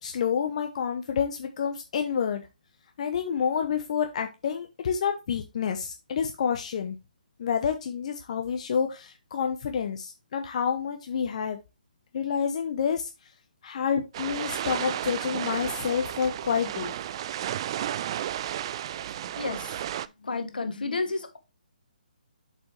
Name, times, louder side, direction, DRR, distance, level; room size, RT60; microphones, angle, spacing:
voice 1, 0.0-2.5 3.0-7.0 7.4-11.6 12.1-13.3 13.6-17.0, left 7 dB, 45° left, 0.8 m, -28 dB
sound 1, 14.1-20.1, right 11 dB, 35° right, 0.3 m, -33 dB
voice 2, 19.4-19.8 20.2-21.4, left 3 dB, 75° left, 1.5 m, -31 dB
7.3 x 5.3 x 3.1 m
figure-of-eight pair, 145°, 5 cm